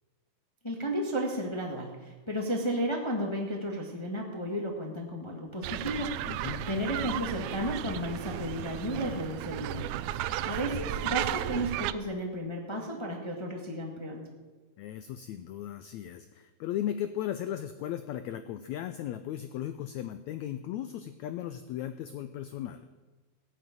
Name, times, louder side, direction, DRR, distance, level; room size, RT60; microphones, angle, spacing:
voice 1, 0.6-6.2 6.7-9.9 10.4-14.2, equal, 25° left, 0 dB, 0.5 m, -33 dB
sound 1, 5.6-11.9, right 13 dB, 85° right, 1.7 m, -34 dB
voice 2, 6.3-6.7 10.3-10.6 14.8-22.9, left 11 dB, 90° left, 10 dB, 1.6 m, -36 dB
16.0 x 6.8 x 9.4 m, 1.2 s
omnidirectional pair, 3.9 m